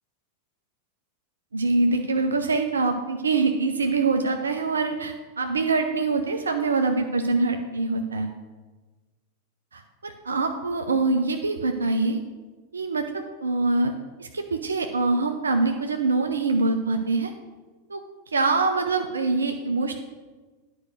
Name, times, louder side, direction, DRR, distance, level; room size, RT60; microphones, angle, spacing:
voice 1, 1.5-8.3 9.7-12.2 12.7-13.9 14.2-17.3 17.9-18.0 18.3-20.0, right 3 dB, 75° right, 5 dB, 0.6 m, -24 dB
10.0 x 5.1 x 6.3 m, 1.3 s
figure-of-eight pair, 90°, 0 cm